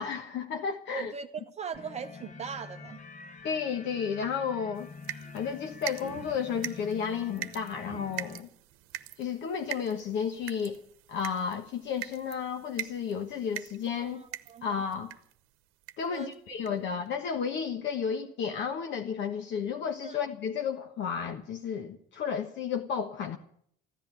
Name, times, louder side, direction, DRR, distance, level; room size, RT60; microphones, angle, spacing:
voice 1, 0.0-1.1 3.4-4.9 5.3-8.5 9.2-10.8 11.1-14.2 14.6-15.1 16.0-23.4, left 7 dB, 60° left, 1.3 m, -32 dB
voice 2, 0.9-3.0 14.0-14.7 16.1-16.3 16.7-16.8 20.0-20.2, right 6 dB, 30° right, 0.7 m, -40 dB
sound 1, 1.7-8.4, left 4 dB, 35° left, 1.4 m, -47 dB
sound 2, 4.8-15.4 15.8-16.2 16.7-16.8 17.1-17.2, right 14 dB, 80° right, 0.9 m, -43 dB
15.0 x 10.5 x 8.9 m
cardioid pair, 105°, 21 cm